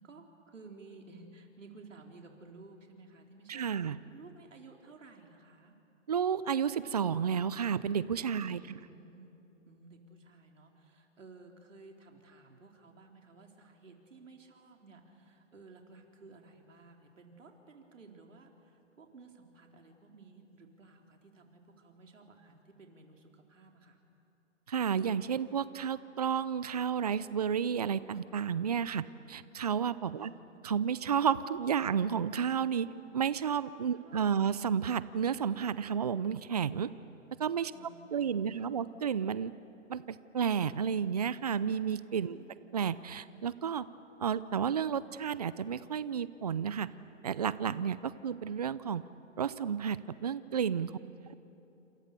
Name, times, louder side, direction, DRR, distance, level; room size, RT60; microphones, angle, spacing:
voice 1, 0.0-5.7 8.4-9.3 9.7-24.0 30.2-30.6 33.9-34.6 37.7-39.0 42.3-42.6 51.0-51.4, right 3 dB, 75° right, 2 dB, 4.2 m, -55 dB
voice 2, 3.5-4.0 6.1-8.8 24.7-30.3 30.6-32.9 33.1-36.9 37.4-37.7 38.1-39.5 39.9-42.4 42.7-43.9 44.2-46.9 47.2-49.0 49.4-51.0, right 7 dB, 30° right, 17 dB, 0.5 m, -31 dB
28.0 x 27.5 x 6.8 m, 2.9 s
hypercardioid pair, 155°, 38 cm